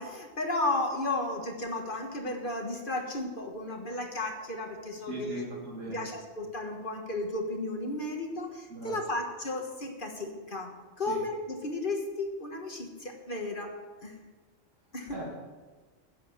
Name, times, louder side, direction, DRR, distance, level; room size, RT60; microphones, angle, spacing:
voice 1, 0.0-5.5 5.9-10.7 11.0-13.7 14.0-14.1 14.9-15.2, left 2 dB, 45° left, 3 dB, 1.6 m, -34 dB
voice 2, 5.0-6.2 8.7-8.9 11.1-11.2 15.1-15.3, right 1 dB, 80° right, -4 dB, 2.5 m, -39 dB
11.0 x 7.7 x 9.1 m, 1.3 s
omnidirectional pair, 1.3 m